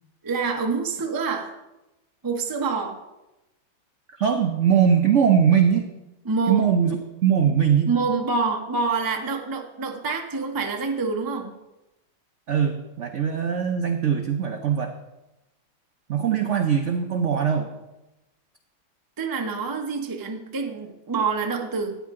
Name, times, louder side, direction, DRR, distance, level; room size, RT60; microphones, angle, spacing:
voice 1, 0.2-1.5 2.2-3.0 6.2-6.7 7.9-11.5 19.2-22.0, right 4 dB, 30° right, 3 dB, 0.3 m, -26 dB
voice 2, 4.1-5.9 6.5-7.9 12.5-14.9 16.1-17.7, right 8 dB, 85° right, 5 dB, 0.6 m, -21 dB
13.0 x 9.4 x 3.7 m, 0.98 s
omnidirectional pair, 2.1 m